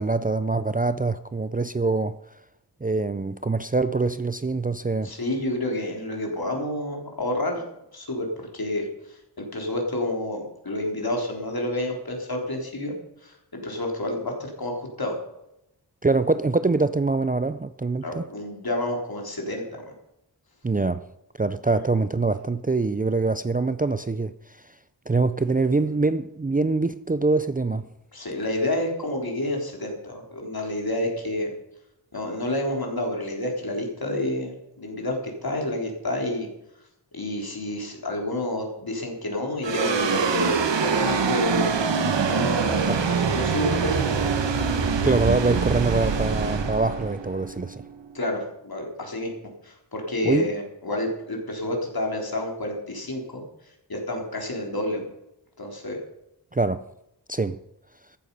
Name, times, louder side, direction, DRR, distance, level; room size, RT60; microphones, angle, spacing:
voice 1, 0.0-2.2 2.8-5.1 16.0-18.2 20.6-21.1 21.4-24.3 25.1-27.9 42.9-43.0 45.0-47.8 50.2-50.5 56.5-56.9 57.3-57.6, right 3 dB, 20° right, 0.5 m, -24 dB
voice 2, 5.0-7.6 7.9-8.8 9.1-13.0 13.2-15.2 18.0-19.6 28.1-31.5 32.1-36.5 37.1-41.7 42.2-44.3 48.1-49.3 49.6-53.4 53.9-55.1 55.6-56.0, left 1 dB, 55° left, 3.9 m, -29 dB
sound 1, 39.6-48.2, right 5 dB, 90° right, 1.2 m, -24 dB
14.5 x 11.0 x 5.5 m
wide cardioid pair, 80°, 42 cm